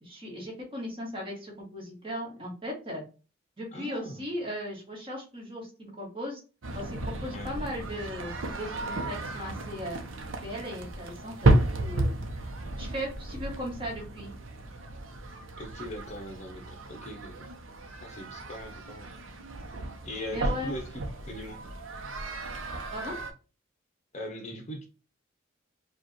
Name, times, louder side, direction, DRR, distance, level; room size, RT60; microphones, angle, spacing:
voice 1, 0.0-3.0 3.6-6.4 6.7-10.0 10.4-12.5 12.8-14.3 20.3-20.7 22.9-23.1, equal, 25° right, -3 dB, 1.7 m, -37 dB
voice 2, 3.7-4.3 7.3-7.5 15.6-17.5 18.0-19.1 20.0-21.0 21.3-21.6 24.1-24.8, equal, 35° left, 3 dB, 0.7 m, -40 dB
sound 1, 6.6-23.3, right 2 dB, 80° right, 0.7 m, -32 dB
5.0 x 2.4 x 2.9 m, 0.34 s
head